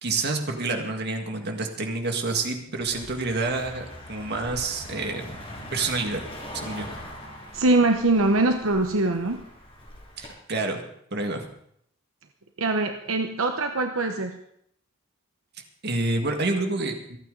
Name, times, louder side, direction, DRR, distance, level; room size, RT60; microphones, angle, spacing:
voice 1, 0.0-5.4 5.7-6.2 6.5-6.9 10.2-10.8 11.1-11.5 15.8-17.2, right 3 dB, 50° right, 4 dB, 2.0 m, -28 dB
Car passing by, 2.8-10.3, left 1 dB, 25° left, 5.9 m, -41 dB
voice 2, 7.5-9.4 12.6-14.4, right 2 dB, 80° right, 5 dB, 1.0 m, -23 dB
27.0 x 9.1 x 4.0 m, 0.69 s
head